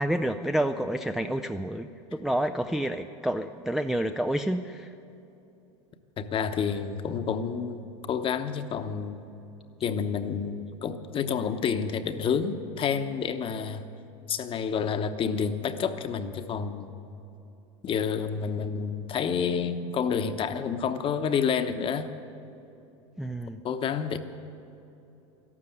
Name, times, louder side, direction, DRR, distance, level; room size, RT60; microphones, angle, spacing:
voice 1, 0.0-4.9 23.2-23.6, right 1 dB, ahead, 6 dB, 0.4 m, -29 dB
voice 2, 6.2-9.2 9.8-13.8 14.3-16.9 17.8-22.1 23.6-24.2, left 6 dB, 35° left, 9 dB, 1.0 m, -29 dB
13.0 x 12.0 x 8.0 m, 2.9 s
supercardioid pair, 110°, 16 cm